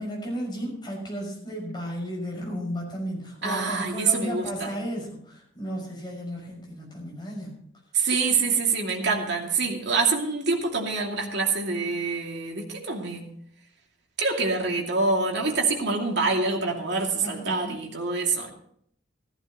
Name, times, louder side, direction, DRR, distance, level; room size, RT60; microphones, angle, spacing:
voice 1, 0.0-7.6 17.2-17.8, equal, 25° left, -2 dB, 5.9 m, -34 dB
voice 2, 3.4-4.7 7.9-13.3 14.2-18.5, right 4 dB, 60° right, 0 dB, 2.6 m, -26 dB
14.5 x 14.5 x 3.1 m, 0.66 s
head